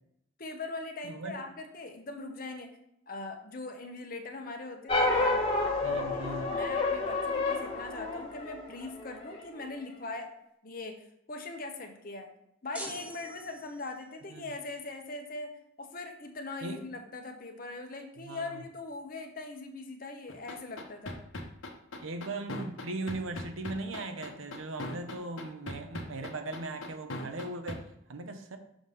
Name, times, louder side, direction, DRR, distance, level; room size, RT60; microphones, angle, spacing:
voice 1, 0.4-2.7 3.1-5.4 5.7-10.3 10.6-11.0 11.3-12.3 12.6-15.5 15.8-21.2, left 3 dB, 45° left, 4 dB, 0.9 m, -41 dB
voice 2, 1.0-1.3 5.8-6.6 14.3-14.5 16.6-16.8 18.2-18.6 22.0-27.8 28.1-28.6, right 2 dB, 90° right, 7 dB, 0.8 m, -38 dB
sound 1, 4.9-9.5, left 2 dB, 30° left, 1.2 m, -30 dB
sound 2, 12.7-14.1, right 1 dB, 5° right, 0.6 m, -44 dB
sound 3, 20.3-27.8, left 1 dB, 80° left, 1.0 m, -38 dB
6.2 x 3.3 x 5.4 m, 0.77 s
head